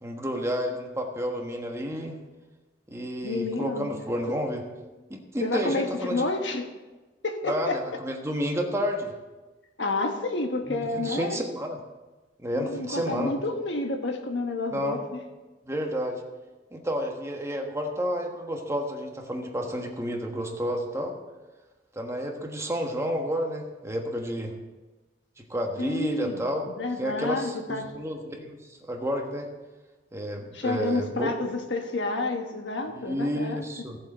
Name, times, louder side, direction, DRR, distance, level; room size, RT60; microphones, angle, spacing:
voice 1, 0.0-2.2 2.9-4.6 5.1-6.3 7.4-9.1 10.7-11.8 12.4-13.3 14.7-15.0 15.6-16.2 16.7-21.1 21.9-24.5 25.4-26.7 27.0-29.5 30.1-31.3 32.9-34.0, equal, 15° right, 2 dB, 1.3 m, -30 dB
voice 2, 3.2-3.9 4.3-4.4 5.4-6.7 7.2-8.0 9.8-11.4 12.5-15.2 25.8-28.0 30.5-33.7, left 2 dB, 90° left, 5 dB, 1.3 m, -30 dB
16.5 x 7.3 x 4.3 m, 1.2 s
head